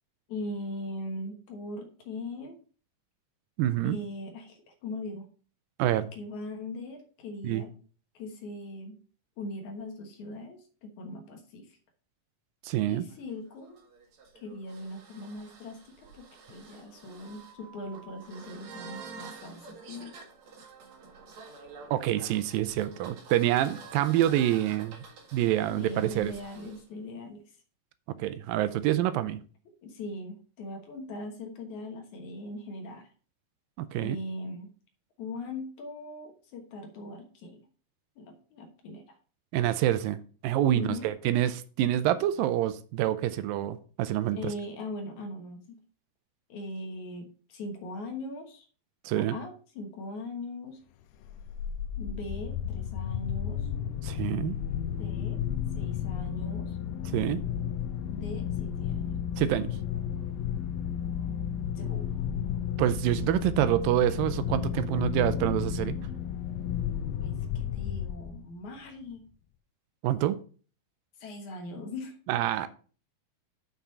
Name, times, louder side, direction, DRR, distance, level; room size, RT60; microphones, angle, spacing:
voice 1, 0.3-2.6 3.8-5.3 6.0-7.7 8.1-9.0 9.4-11.8 12.9-13.8 14.4-20.2 25.8-27.4 29.7-33.1 34.0-34.7 35.2-37.6 38.2-39.2 40.7-41.1 44.3-45.8 46.5-48.7 49.2-50.8 52.0-53.7 55.0-55.4 55.7-56.8 58.1-59.0 61.8-62.1 67.2-69.2 71.2-72.2, left 2 dB, 65° left, 4 dB, 2.5 m, -40 dB
voice 2, 3.6-4.0 5.8-6.1 7.4-7.6 12.6-13.1 21.9-25.0 25.3-26.3 28.2-29.4 33.8-34.2 39.5-44.4 49.1-49.4 54.0-54.6 57.1-57.4 59.4-59.8 62.8-66.0 70.0-70.4 72.3-72.7, right 13 dB, 85° right, 13 dB, 2.3 m, -27 dB
sound 1, 13.1-26.8, right 4 dB, 55° right, 2.7 m, -49 dB
sound 2, 51.3-68.6, left 9 dB, 85° left, 2.4 m, -33 dB
6.9 x 5.9 x 5.4 m, 0.40 s
omnidirectional pair, 4.1 m